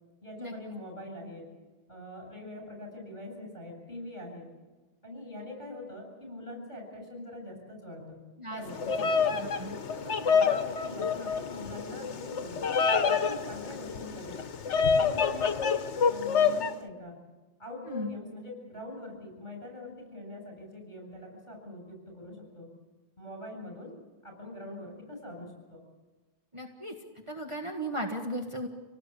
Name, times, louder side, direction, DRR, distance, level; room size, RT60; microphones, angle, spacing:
voice 1, 0.2-1.5 1.9-4.4 5.0-8.2 8.5-9.2 9.9-12.7 13.0-14.4 15.0-15.7 16.0-17.2 17.6-22.7 23.2-23.9 24.2-25.9, left 1 dB, 40° left, 1 dB, 7.7 m, -43 dB
Bird vocalization bird call bird song, 8.7-16.7, left 6 dB, 80° left, 1.3 m, -27 dB
voice 2, 9.3-9.8 17.9-18.1 26.5-26.9 27.3-28.7, equal, 25° right, 1 dB, 1.7 m, -36 dB
27.5 x 18.5 x 8.3 m, 1.2 s
omnidirectional pair, 1.2 m